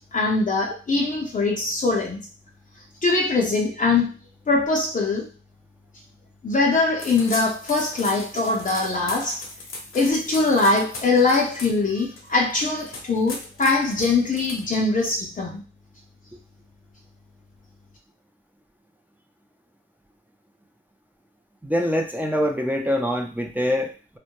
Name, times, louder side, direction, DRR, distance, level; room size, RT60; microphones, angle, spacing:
voice 1, 0.1-2.2 3.0-4.2 4.5-5.3 6.4-9.4 9.9-15.6, left 3 dB, 40° left, 0.6 m, -22 dB
sound 1, 7.0-15.0, left 2 dB, 75° left, 0.7 m, -38 dB
voice 2, 21.6-24.2, equal, 10° right, 0.5 m, -24 dB
2.2 x 2.1 x 2.9 m
cardioid pair, 45°, 21 cm